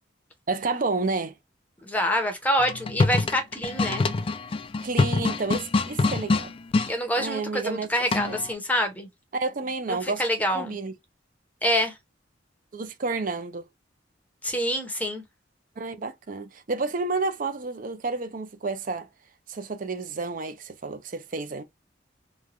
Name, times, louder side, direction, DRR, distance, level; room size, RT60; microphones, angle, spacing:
voice 1, 0.5-1.3 4.8-6.5 7.2-7.9 8.3-8.4 9.3-10.2 10.5-10.9 12.7-13.7 15.8-19.1 19.5-21.6, right 3 dB, 45° right, 0.5 m, -30 dB
voice 2, 1.8-4.1 6.9-9.1 9.9-10.7 11.6-12.0 14.4-15.2, equal, 10° left, 0.7 m, -26 dB
sound 1, 2.6-6.9 8.1-8.5, left 3 dB, 30° left, 0.3 m, -25 dB
3.1 x 2.2 x 2.4 m
head